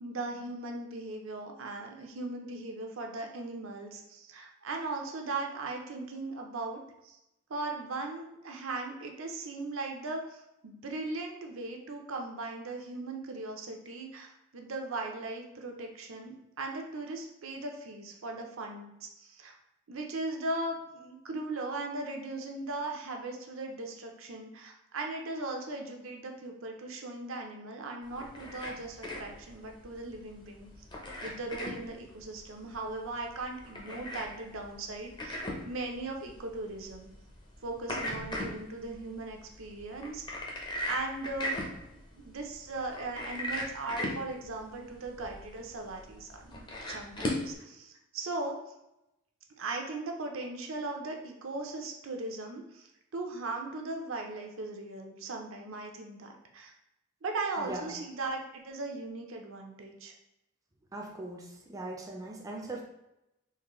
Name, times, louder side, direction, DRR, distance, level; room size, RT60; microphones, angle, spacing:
voice 1, 0.0-7.2 7.5-19.5 19.9-35.4 35.7-37.1 37.6-40.4 40.9-41.6 41.9-48.6 49.6-56.7 57.2-60.1, right 2 dB, 70° right, 2 dB, 0.6 m, -38 dB
sound 1, 28.0-47.5, left 1 dB, 20° left, 0.7 m, -39 dB
voice 2, 60.9-62.8, right 2 dB, 15° right, -1 dB, 0.4 m, -40 dB
3.9 x 2.6 x 3.0 m, 0.88 s
head